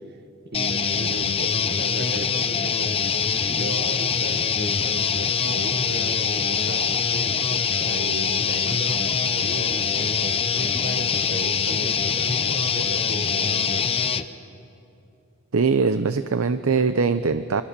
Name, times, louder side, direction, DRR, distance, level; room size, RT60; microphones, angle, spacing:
voice 1, 0.4-2.9 3.5-13.9, right 2 dB, 50° right, 6 dB, 1.7 m, -36 dB
sound 1, 0.5-14.2, left 6 dB, 25° left, 0.7 m, -24 dB
voice 2, 15.5-17.6, right 4 dB, 75° right, 11 dB, 0.7 m, -21 dB
26.0 x 25.5 x 6.8 m, 2.8 s
head